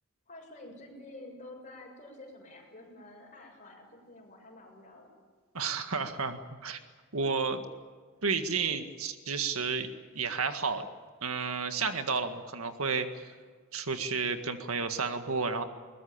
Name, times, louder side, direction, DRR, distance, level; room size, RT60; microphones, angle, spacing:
voice 1, 0.3-5.1, left 2 dB, 35° left, 1 dB, 7.0 m, -49 dB
voice 2, 5.5-6.8 7.1-7.6 8.2-10.9 11.2-13.3 13.7-15.6, right 5 dB, 85° right, 7 dB, 1.8 m, -32 dB
22.0 x 20.0 x 8.8 m, 1.5 s
head